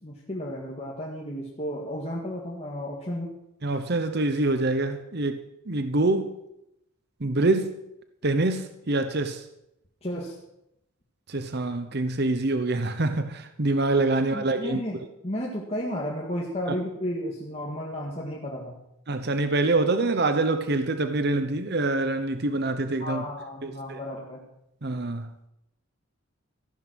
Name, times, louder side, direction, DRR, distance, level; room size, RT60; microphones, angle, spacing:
voice 1, 0.0-3.3 10.0-10.4 14.3-18.8 23.0-24.4, equal, 30° left, 1.9 m, -33 dB
voice 2, 3.6-6.3 7.2-7.8 8.2-9.5 11.3-14.8 16.7-16.8 19.1-23.3 23.6-24.0 24.8-25.3, right 2 dB, 50° right, 0.9 m, -25 dB
14.5 x 11.5 x 6.2 m
head